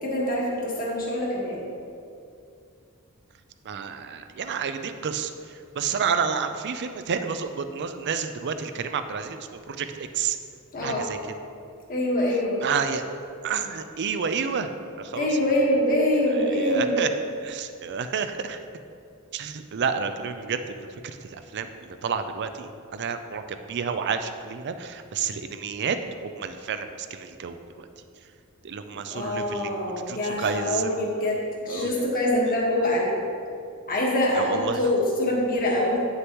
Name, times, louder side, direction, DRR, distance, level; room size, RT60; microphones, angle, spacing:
voice 1, 0.0-1.7 10.7-11.0 11.9-12.6 15.1-17.1 29.1-33.2 33.9-36.1, left 1 dB, 40° left, -3 dB, 1.5 m, -24 dB
voice 2, 3.6-10.4 10.8-11.4 12.6-13.0 13.4-14.7 15.0-15.4 16.3-17.1 17.4-18.6 19.3-20.6 21.0-21.7 22.0-26.0 26.2-27.9 28.6-29.7 30.1-30.9 31.7-31.9 34.4-34.8, right 6 dB, 50° right, 9 dB, 0.4 m, -30 dB
9.3 x 6.5 x 3.0 m, 2.5 s
head